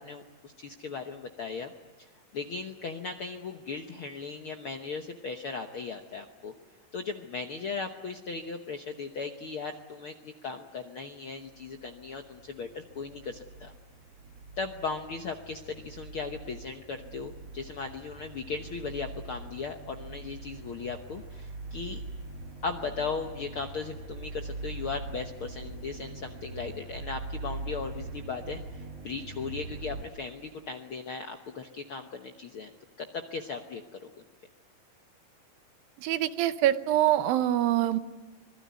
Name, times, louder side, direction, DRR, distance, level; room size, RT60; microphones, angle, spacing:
voice 1, 0.0-1.7 2.0-6.5 6.9-13.7 14.6-22.0 22.6-32.7 33.0-34.1, left 4 dB, 70° left, 5 dB, 1.3 m, -37 dB
sound 1, 11.5-30.0, right 2 dB, 45° right, 3.8 m, -42 dB
voice 2, 36.0-38.0, right 12 dB, 90° right, 12 dB, 2.8 m, -25 dB
25.5 x 21.0 x 9.5 m, 1.2 s
omnidirectional pair, 4.0 m